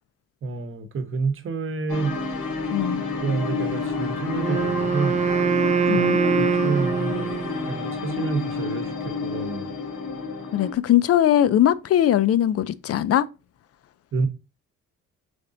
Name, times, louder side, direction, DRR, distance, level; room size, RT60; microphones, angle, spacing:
voice 1, 0.4-2.2 3.2-5.2 5.9-9.7 14.1-14.3, right 4 dB, 45° right, 0.9 m, -29 dB
sound 1, 1.9-10.7, left 4 dB, 85° left, 1.2 m, -29 dB
voice 2, 2.7-3.0 5.9-6.2 10.5-13.3, left 11 dB, 55° left, 0.4 m, -20 dB
Wind instrument woodwind instrument, 4.3-7.6, right 6 dB, 25° right, 0.4 m, -23 dB
3.8 x 3.5 x 3.9 m
cardioid pair, 90°, 30 cm